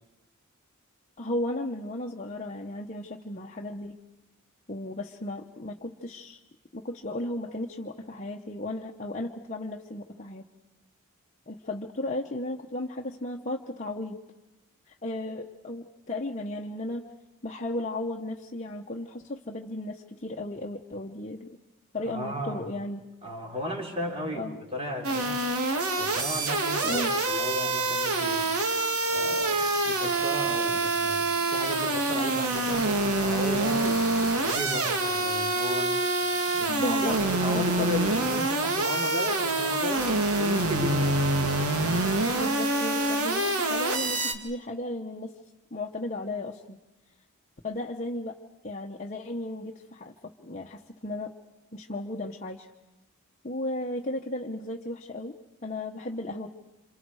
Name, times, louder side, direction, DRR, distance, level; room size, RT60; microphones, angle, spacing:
voice 1, 1.2-4.0 4.7-6.4 6.7-10.5 11.5-14.2 14.9-17.0 17.4-21.5 21.9-23.0 24.3-24.6 26.8-27.1 36.7-37.2 37.5-37.9 42.3-45.3 45.7-46.8 47.6-48.3 48.6-51.3 51.7-52.7 53.4-55.3 55.6-56.5, left 1 dB, 35° left, 0 dB, 1.0 m, -35 dB
voice 2, 22.0-22.7 23.2-25.4 26.0-28.5 29.1-36.0 36.5-40.1 40.4-41.2, equal, 25° right, 1 dB, 3.6 m, -35 dB
sound 1, 25.0-44.3, right 2 dB, 90° right, 2.1 m, -26 dB
27.5 x 27.5 x 4.8 m, 0.99 s
head